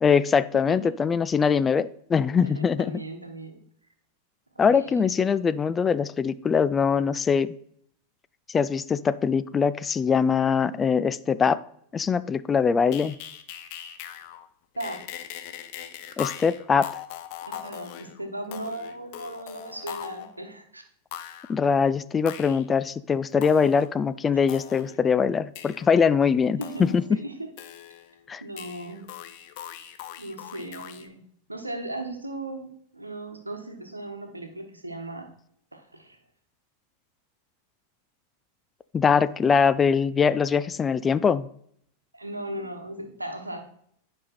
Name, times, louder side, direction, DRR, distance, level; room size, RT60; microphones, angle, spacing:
voice 1, 0.0-3.0 4.6-7.5 8.5-11.6 11.9-13.2 16.2-16.9 21.5-27.2 28.3-28.4 38.9-41.5, left 6 dB, 20° left, 0.3 m, -22 dB
voice 2, 0.5-0.9 2.4-3.6 4.5-5.1 14.8-15.0 17.4-20.8 26.6-27.4 28.4-29.1 30.2-31.2 31.5-35.3 35.7-36.2 42.1-43.7, right 1 dB, 85° right, 1.1 m, -37 dB
sound 1, 12.9-14.5 14.7-20.4 21.1-21.6 22.3-22.6 23.4-23.9 24.5-25.0 25.5-25.9 26.6-27.2 27.6-28.3 28.6-31.1, left 11 dB, 45° left, 0.7 m, -40 dB
9.8 x 5.3 x 4.2 m
figure-of-eight pair, 90°, 0 cm